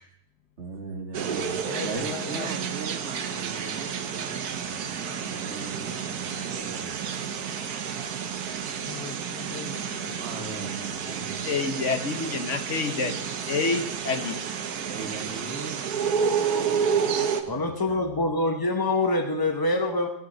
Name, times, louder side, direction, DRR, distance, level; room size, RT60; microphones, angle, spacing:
voice 1, 0.6-1.5 1.8-7.0 10.2-11.5 14.9-15.8 17.4-18.2, right 4 dB, 45° right, 5 dB, 1.6 m, -39 dB
sound 1, 1.1-17.4, right 7 dB, 70° right, 1.4 m, -30 dB
voice 2, 1.6-2.6 8.8-10.2, left 8 dB, 85° left, 8 dB, 1.5 m, -39 dB
voice 3, 11.4-14.4, left 4 dB, 55° left, 6 dB, 1.2 m, -28 dB
voice 4, 17.5-20.1, left 2 dB, 35° left, 5 dB, 0.3 m, -25 dB
18.0 x 9.1 x 3.9 m, 0.77 s
omnidirectional pair, 1.7 m